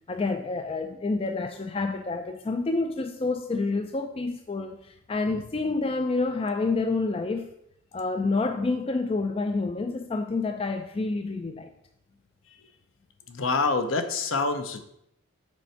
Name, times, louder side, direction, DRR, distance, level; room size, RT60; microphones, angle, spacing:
voice 1, 0.1-7.5 7.9-11.7, left 3 dB, 25° left, 6 dB, 0.3 m, -28 dB
voice 2, 13.3-14.8, left 3 dB, 65° left, 8 dB, 0.8 m, -27 dB
6.3 x 4.3 x 5.7 m, 0.76 s
head